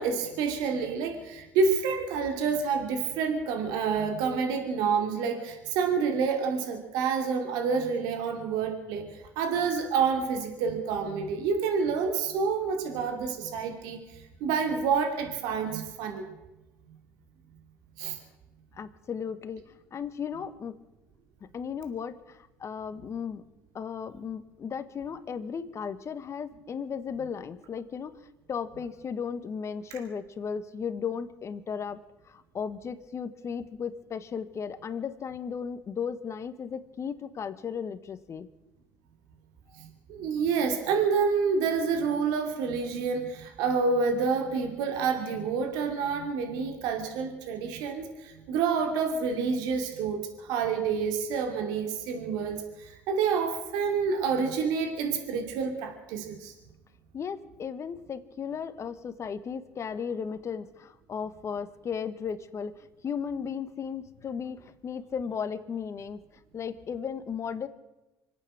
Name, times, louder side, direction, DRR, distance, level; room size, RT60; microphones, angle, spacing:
voice 1, 0.0-9.0 9.4-14.0 14.4-16.2 18.0-18.2 40.1-56.5, right 5 dB, 75° right, 4 dB, 2.7 m, -28 dB
voice 2, 18.7-20.8 21.4-23.4 23.7-28.2 28.5-38.5 57.1-66.2 66.5-67.7, left 6 dB, 45° left, 12 dB, 1.4 m, -35 dB
25.5 x 8.7 x 6.3 m, 1.0 s
hypercardioid pair, 70°, 7 cm